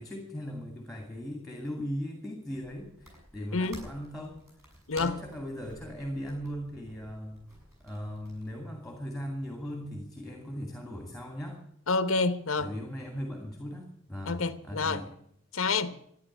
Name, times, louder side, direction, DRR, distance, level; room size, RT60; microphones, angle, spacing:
voice 1, 0.0-4.4 5.0-7.4 7.8-11.6 12.6-15.1, equal, ahead, 2.5 m, -38 dB
sound 1, 2.5-8.5, equal, 15° right, 6.6 m, -52 dB
voice 2, 3.5-3.9 4.9-5.2 11.9-12.7 14.3-15.0 15.5-16.0, left 4 dB, 65° left, 1.0 m, -28 dB
13.5 x 10.0 x 9.9 m
head